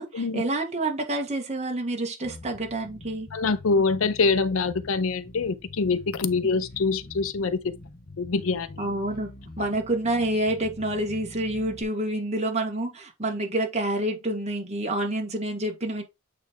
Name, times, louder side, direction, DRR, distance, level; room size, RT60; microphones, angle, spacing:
voice 1, 0.0-3.3 6.4-6.5 8.8-9.3 9.6-16.0, right 1 dB, 30° right, 1.5 m, -28 dB
Bass guitar, 2.2-11.8, left 2 dB, 45° left, 1.2 m, -45 dB
voice 2, 3.3-7.6 8.2-8.8, left 4 dB, 70° left, 0.5 m, -25 dB
8.5 x 3.3 x 3.6 m
head